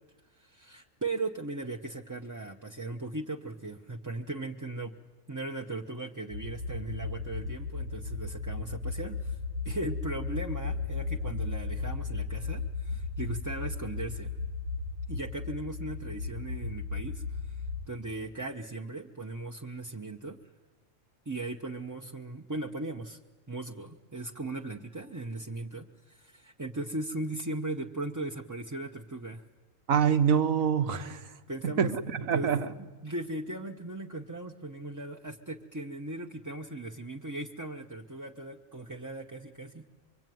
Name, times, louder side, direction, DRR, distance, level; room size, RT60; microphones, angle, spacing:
voice 1, 0.3-4.9 5.3-9.4 9.6-14.3 15.1-20.4 21.3-23.2 23.5-29.4 31.5-31.9 32.3-32.5 33.0-39.9, right 2 dB, 15° right, 0.7 m, -38 dB
sound 1, 6.3-17.9, left 4 dB, 50° right, 1.3 m, -35 dB
voice 2, 29.9-31.2 31.6-32.7, right 7 dB, 80° right, 1.6 m, -26 dB
24.0 x 24.0 x 9.3 m
omnidirectional pair, 1.4 m